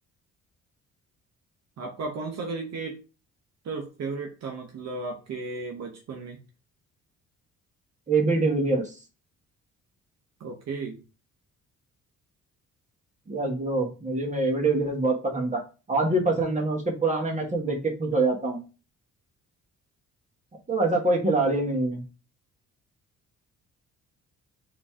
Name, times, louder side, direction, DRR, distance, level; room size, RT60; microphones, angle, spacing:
voice 1, 1.8-3.0 3.6-6.4 10.4-11.0, right 3 dB, 60° right, 1 dB, 0.9 m, -34 dB
voice 2, 8.1-8.9 13.3-15.6 15.9-18.6 20.7-22.0, right 2 dB, 25° right, 1 dB, 1.6 m, -25 dB
3.9 x 3.1 x 3.7 m, 0.32 s
cardioid pair, 90°, 30 cm